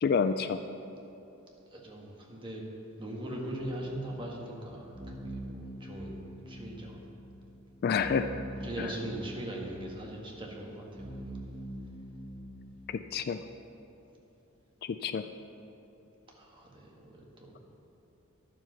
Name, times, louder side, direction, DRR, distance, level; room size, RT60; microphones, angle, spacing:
voice 1, 0.0-0.6 7.8-8.3 8.8-8.9 12.9-13.4 14.8-15.2, left 6 dB, 50° left, 10 dB, 0.3 m, -29 dB
voice 2, 1.7-2.6 3.0-7.0 8.0-8.1 8.6-11.1 16.4-17.6, right 1 dB, 25° right, -2 dB, 1.5 m, -40 dB
sound 1, 3.6-12.7, right 1 dB, ahead, 1.2 m, -44 dB
11.0 x 7.7 x 5.6 m, 2.9 s
head